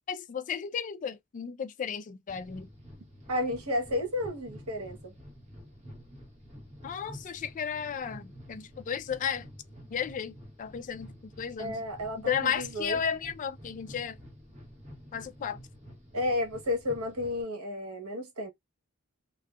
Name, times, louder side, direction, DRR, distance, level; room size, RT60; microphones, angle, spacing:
voice 1, 0.1-2.7 6.8-9.5 9.9-11.8 12.2-14.2 15.1-15.6, left 7 dB, 35° left, 0.3 m, -34 dB
sound 1, 2.3-17.4, equal, 30° right, 1.1 m, -49 dB
voice 2, 3.3-5.1 11.6-13.0 16.1-18.5, left 1 dB, 90° right, 0.9 m, -32 dB
2.6 x 2.3 x 2.2 m
head